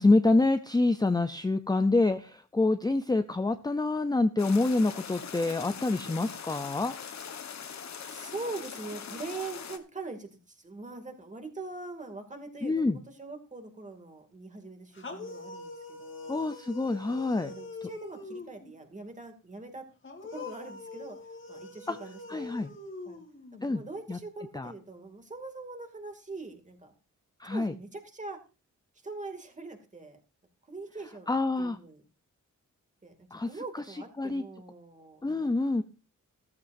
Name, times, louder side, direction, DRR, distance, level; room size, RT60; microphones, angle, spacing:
voice 1, 0.0-6.9 12.6-13.0 16.3-17.5 21.9-22.0 22.3-22.7 23.6-23.8 24.1-24.2 24.5-24.7 27.4-27.7 31.3-31.8 33.3-33.5 34.2-34.4 35.2-35.8, left 2 dB, 15° left, 9 dB, 0.5 m, -26 dB
sound 1, 4.4-9.8, left 7 dB, 60° left, 1.3 m, -42 dB
voice 2, 8.0-16.4 16.8-19.8 20.3-22.5 23.0-23.2 23.6-26.9 27.4-28.4 29.0-30.2 30.7-32.0 33.0-35.5, right 3 dB, 25° right, 4 dB, 2.5 m, -43 dB
sound 2, 15.0-18.7 20.0-23.6, left 3 dB, 40° left, 2.6 m, -43 dB
14.5 x 14.0 x 2.6 m, 0.32 s
wide cardioid pair, 165°, 31 cm